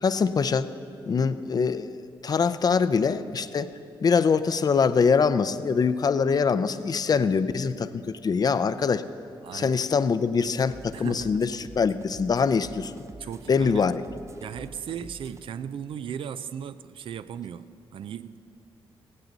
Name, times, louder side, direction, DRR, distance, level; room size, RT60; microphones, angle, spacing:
voice 1, 0.0-0.7 1.1-3.7 4.0-9.0 9.5-11.5 11.8-13.0 13.5-14.0, left 5 dB, 45° left, 0.5 m, -23 dB
voice 2, 9.4-9.8 10.9-11.4 13.2-13.9 14.4-18.4, right 8 dB, 70° right, 0.4 m, -37 dB
sound 1, 10.4-15.4, right 3 dB, 30° right, 0.7 m, -47 dB
16.5 x 15.5 x 4.0 m
cardioid pair, 75°, 9 cm